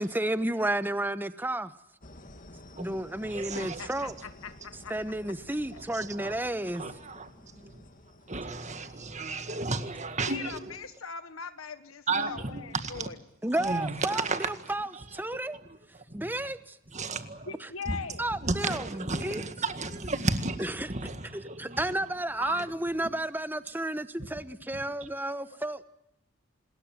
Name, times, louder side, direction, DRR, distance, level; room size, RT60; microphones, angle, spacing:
voice 1, 0.0-1.7 2.7-4.1 4.9-6.8 13.4-15.6 16.1-16.8 18.2-19.4 20.6-20.9 21.3-25.8, right 1 dB, 10° right, 1.0 m, -32 dB
sound 1, 2.0-9.8, left 1 dB, 40° left, 2.5 m, -52 dB
voice 2, 2.8-4.1 5.7-6.3 6.6-7.9 8.3-10.7 12.1-13.1 13.6-16.3 16.9-17.5 17.8-18.0 18.4-21.9 22.4-22.7 23.0-23.1 24.3-24.4 24.7-25.1, right 3 dB, 35° right, 1.9 m, -34 dB
voice 3, 3.4-4.9 10.3-13.1 17.5-18.2 21.8-21.9 22.4-22.7, left 5 dB, 80° left, 1.5 m, -41 dB
27.0 x 20.5 x 7.6 m
head